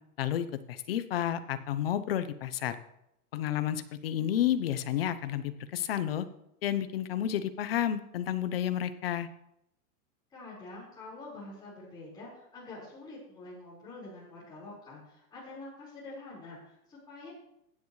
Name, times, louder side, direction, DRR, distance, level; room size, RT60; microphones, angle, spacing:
voice 1, 0.2-2.8 3.3-6.3 6.6-9.3, left 10 dB, 40° left, 12 dB, 0.7 m, -31 dB
voice 2, 10.3-17.3, left 2 dB, 10° left, -8 dB, 4.6 m, -46 dB
15.5 x 9.7 x 3.2 m, 0.79 s
supercardioid pair, 175°, 46 cm